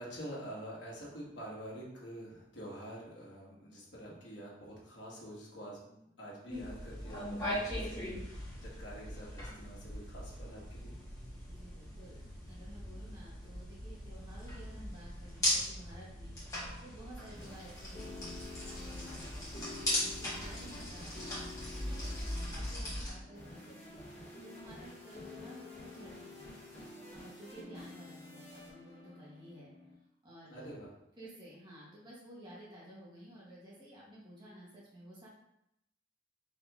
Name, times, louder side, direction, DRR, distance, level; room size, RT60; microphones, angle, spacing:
voice 1, 0.0-11.0 22.0-22.3 30.5-31.0, equal, 80° left, -5 dB, 1.3 m, -47 dB
sound 1, 6.5-23.1, left 1 dB, 20° left, 1.4 m, -39 dB
voice 2, 11.4-16.4 16.8-18.3 18.8-21.3 21.8-22.1 22.4-24.0 24.4-26.5 27.1-29.7 30.2-30.7 31.2-35.3, right 1 dB, 25° right, -6 dB, 1.4 m, -53 dB
sound 2, 17.1-29.9, left 2 dB, 40° left, 1.4 m, -50 dB
4.1 x 3.0 x 3.5 m, 0.80 s
head